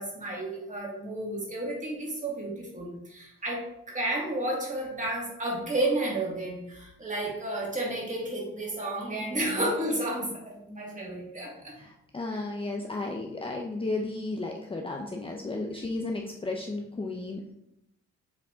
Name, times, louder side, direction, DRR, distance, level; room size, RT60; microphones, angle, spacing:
voice 1, 0.0-11.7 15.5-15.7, right 1 dB, 25° right, -3 dB, 2.4 m, -32 dB
voice 2, 9.2-9.7 11.8-17.5, left 2 dB, 20° left, 1 dB, 0.6 m, -34 dB
7.2 x 3.8 x 3.6 m, 0.81 s
cardioid pair, 90°, 30 cm